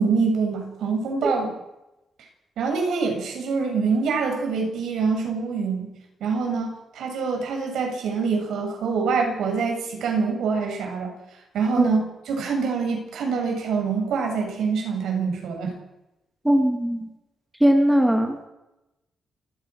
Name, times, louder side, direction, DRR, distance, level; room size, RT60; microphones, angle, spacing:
voice 1, 0.0-1.5 2.6-5.9 6.2-11.1 11.5-15.8, right 5 dB, 85° right, 2 dB, 7.4 m, -25 dB
voice 2, 16.4-17.1 17.6-18.5, equal, 5° right, 4 dB, 2.5 m, -19 dB
28.0 x 17.5 x 6.3 m, 0.94 s
wide cardioid pair, 170°, 0 cm